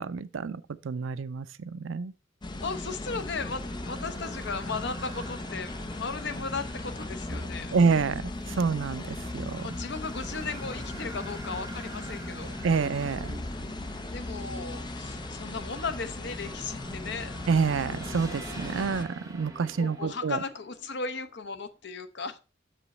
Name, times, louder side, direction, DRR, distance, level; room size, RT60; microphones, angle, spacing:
voice 1, 0.0-2.1 7.7-8.3 8.6-9.7 12.6-13.3 17.5-20.4, right 5 dB, 80° right, 0.5 m, -28 dB
sound 1, 2.4-19.0, left 2 dB, 25° left, 0.5 m, -38 dB
voice 2, 2.6-7.7 9.6-12.6 14.1-17.3 19.8-22.4, left 4 dB, 65° left, 0.8 m, -36 dB
sound 2, 3.4-21.3, right 1 dB, 20° right, 1.1 m, -45 dB
6.9 x 5.1 x 4.1 m
head